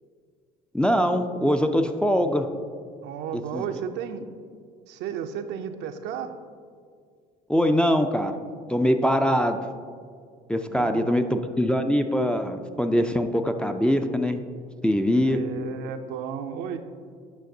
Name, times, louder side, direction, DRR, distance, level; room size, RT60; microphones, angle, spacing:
voice 1, 0.7-2.5 3.5-3.6 7.5-8.4 8.7-9.6 10.5-14.4 14.8-15.4, equal, 5° left, 5 dB, 0.4 m, -23 dB
voice 2, 3.0-4.3 4.9-6.3 9.1-9.4 10.7-11.1 15.2-16.8, right 8 dB, 65° right, 7 dB, 0.5 m, -33 dB
9.0 x 5.7 x 2.7 m, 2.1 s
hypercardioid pair, 75°, 19 cm